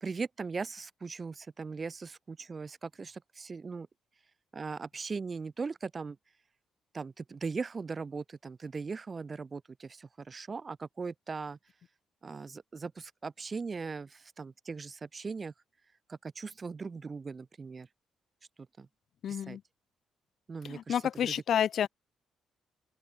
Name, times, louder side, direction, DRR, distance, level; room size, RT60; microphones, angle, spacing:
voice 1, 0.0-3.9 4.5-6.2 6.9-11.6 12.2-15.5 16.1-17.9 18.8-18.9 19.3-19.6 20.5-21.3, right 4 dB, 35° right, 0.8 m, -39 dB
voice 2, 19.2-19.6 20.7-21.9, left 9 dB, 65° left, 0.7 m, -29 dB
open air
cardioid pair, 90°, 0 cm